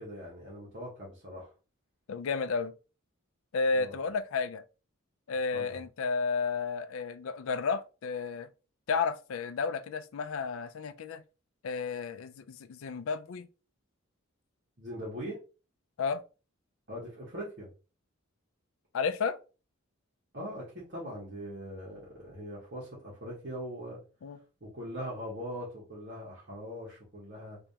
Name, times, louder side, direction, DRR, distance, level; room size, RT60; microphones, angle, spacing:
voice 1, 0.0-1.5 3.7-4.0 5.5-5.8 14.8-15.4 16.9-17.7 20.3-24.0 24.6-27.6, equal, 50° right, 1.5 m, -41 dB
voice 2, 2.1-2.7 3.5-4.6 5.3-8.5 8.9-11.2 11.6-13.5 16.0-16.2 18.9-19.4 24.2-24.4, left 5 dB, 70° left, 0.4 m, -32 dB
3.4 x 3.0 x 2.8 m
head